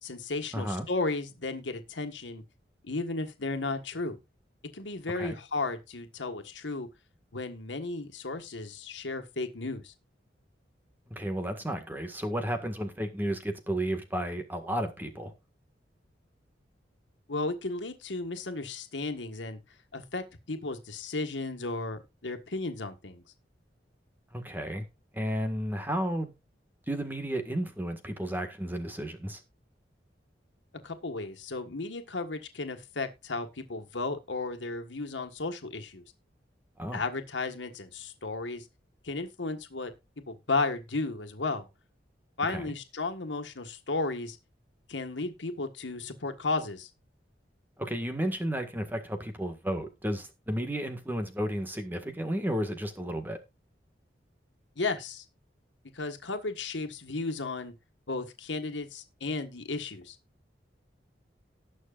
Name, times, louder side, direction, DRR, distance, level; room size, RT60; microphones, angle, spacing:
voice 1, 0.0-2.4 2.8-4.2 4.7-6.9 7.3-9.9 17.3-19.6 19.9-23.2 30.8-36.0 36.9-38.6 39.0-39.9 40.3-41.6 42.4-44.4 44.9-46.9 54.8-55.2 55.9-57.7 58.1-60.2, left 3 dB, 85° left, 1.6 m, -34 dB
voice 2, 0.5-0.8 5.2-5.4 11.1-15.3 24.3-24.8 25.1-26.3 26.9-29.4 36.8-37.0 42.5-42.7 47.8-53.4, equal, 10° right, 1.7 m, -33 dB
18.5 x 6.4 x 2.5 m
head